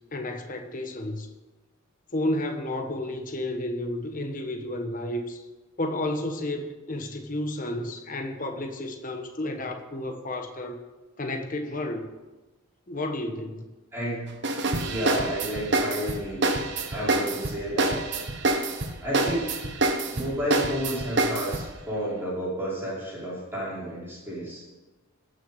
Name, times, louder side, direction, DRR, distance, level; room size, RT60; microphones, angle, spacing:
voice 1, 0.1-1.3 2.1-5.4 5.8-10.8 11.2-12.0 12.9-13.6, left 1 dB, 35° left, 5 dB, 1.2 m, -31 dB
voice 2, 13.9-14.3 14.8-16.4 16.9-18.0 19.0-19.5 20.1-24.6, equal, 10° right, -8 dB, 5.0 m, -31 dB
sound 1, 14.4-21.7, right 2 dB, 50° right, 1.2 m, -27 dB
19.0 x 6.5 x 5.4 m, 1.2 s
head